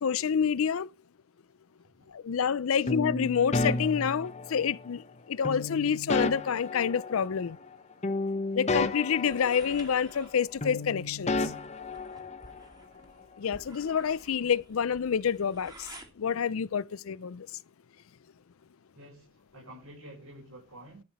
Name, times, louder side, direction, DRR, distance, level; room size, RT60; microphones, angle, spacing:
voice 1, 0.0-0.9 2.1-7.6 8.5-11.5 13.4-15.9 16.2-17.5, left 7 dB, 85° left, 0.5 m, -28 dB
sound 1, 2.9-4.9 5.4-7.8 8.0-10.3 10.6-12.7, left 2 dB, 35° left, 1.1 m, -32 dB
sound 2, 9.3-16.1, right 2 dB, 20° right, 2.3 m, -52 dB
voice 2, 18.9-21.0, right 1 dB, 80° right, 6.2 m, -49 dB
12.5 x 5.9 x 5.8 m
head